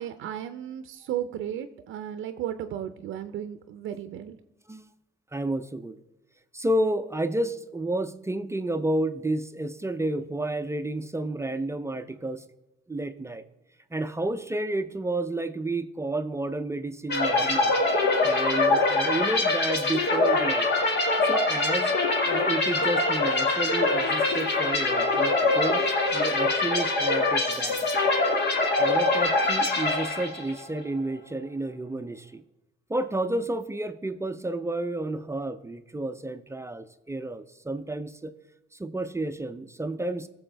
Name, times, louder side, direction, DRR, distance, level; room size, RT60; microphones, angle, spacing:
voice 1, 0.0-4.4, right 10 dB, 80° right, 9 dB, 0.6 m, -34 dB
voice 2, 5.3-6.0 6.5-12.4 12.9-13.4 13.9-17.7 18.2-20.7 21.2-25.8 26.1-27.8 28.8-32.4 32.9-38.3 38.8-40.3, right 2 dB, 15° right, 9 dB, 0.5 m, -31 dB
sound 1, 17.1-30.7, left 2 dB, 60° left, 1.9 m, -24 dB
16.0 x 6.9 x 3.4 m, 0.93 s
cardioid pair, 90°, 20 cm